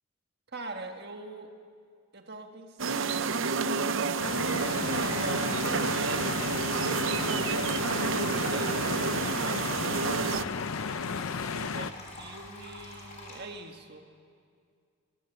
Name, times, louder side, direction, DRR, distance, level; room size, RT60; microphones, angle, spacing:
voice 1, 0.5-1.6 2.1-3.5 4.2-9.8 10.2-10.6 11.5-14.1, right 2 dB, 50° right, 5 dB, 1.7 m, -43 dB
sound 1, 2.8-10.4, right 5 dB, 65° right, 0.7 m, -29 dB
sound 2, 4.2-11.9, left 5 dB, 80° left, 0.7 m, -34 dB
sound 3, 4.6-13.4, left 2 dB, 35° left, 4.1 m, -45 dB
22.5 x 17.0 x 8.2 m, 2.2 s
head